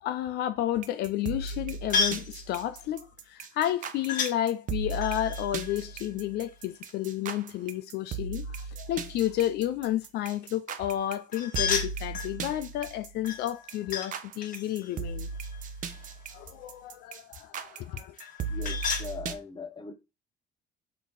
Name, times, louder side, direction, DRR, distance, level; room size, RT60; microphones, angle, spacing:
voice 1, 0.0-15.3 16.3-18.2, left 13 dB, 75° left, 0.4 m, -31 dB
sound 1, 0.8-19.3, right 5 dB, 50° right, 0.6 m, -37 dB
sound 2, 1.9-2.3 4.1-4.4 5.0-6.8 11.3-12.4 13.2-14.1 14.4-16.3 18.2-19.1, left 5 dB, 55° left, 1.2 m, -33 dB
voice 2, 18.4-19.9, left 4 dB, 25° left, 0.9 m, -40 dB
4.1 x 2.8 x 4.6 m
cardioid pair, 110°, 17 cm